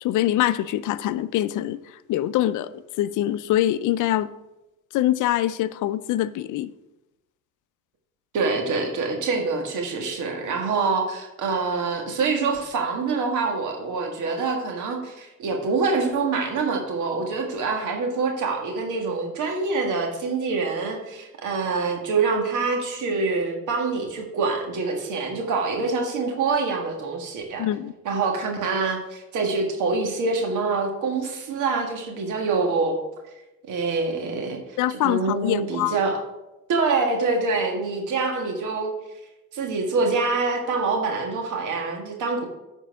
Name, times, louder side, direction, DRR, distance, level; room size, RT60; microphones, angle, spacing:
voice 1, 0.0-1.8 2.1-4.3 4.9-6.7 27.6-27.9 34.8-36.0, left 13 dB, 80° left, 0.5 m, -24 dB
voice 2, 8.3-27.7 28.1-33.0 33.7-34.8 35.0-36.2 36.7-38.9 39.5-42.5, right 4 dB, 80° right, 1.7 m, -25 dB
9.2 x 4.5 x 5.6 m
cardioid pair, 90°, 30 cm